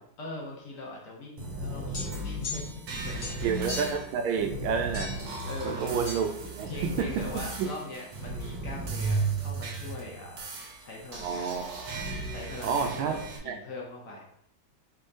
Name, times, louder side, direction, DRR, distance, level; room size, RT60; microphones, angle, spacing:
voice 1, 0.2-3.5 5.2-6.0 6.7-10.4 10.8-11.7 12.3-14.2, left 2 dB, 65° left, -2 dB, 0.8 m, -41 dB
sound 1, 1.4-13.4, right 3 dB, 70° right, 1.5 m, -35 dB
sound 2, 1.9-2.9 3.2-4.1 4.9-5.3 6.1-6.2, left 3 dB, 80° left, 2.3 m, -38 dB
voice 2, 3.4-5.1 5.6-7.7 11.2-11.7 12.6-13.2 13.4-13.5, right 6 dB, 85° right, 5 dB, 1.5 m, -30 dB
4.9 x 3.6 x 2.6 m, 0.72 s
omnidirectional pair, 2.2 m